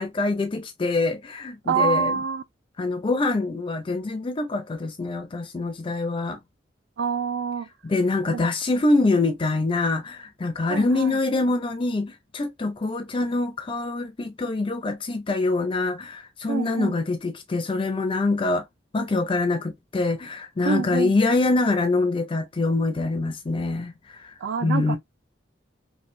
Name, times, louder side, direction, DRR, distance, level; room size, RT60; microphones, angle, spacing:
voice 1, 0.0-2.2 2.8-6.4 7.8-18.7 18.9-24.3 24.6-25.0, left 3 dB, 30° left, 0.4 m, -25 dB
voice 2, 1.7-2.4 7.0-7.7 10.7-11.2 16.5-16.9 20.7-21.1 24.4-25.0, right 5 dB, 70° right, 0.3 m, -26 dB
3.1 x 2.4 x 2.5 m
head